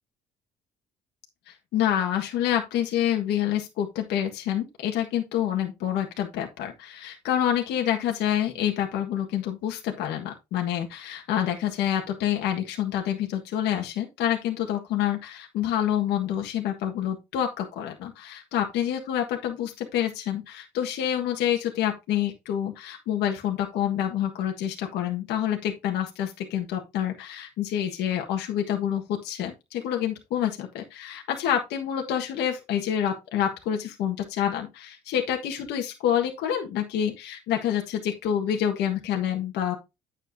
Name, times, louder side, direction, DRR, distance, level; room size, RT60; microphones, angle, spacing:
voice 1, 1.5-39.7, left 10 dB, 85° left, 2 dB, 1.6 m, -27 dB
9.6 x 7.2 x 2.7 m, 0.24 s
cardioid pair, 110°, 17 cm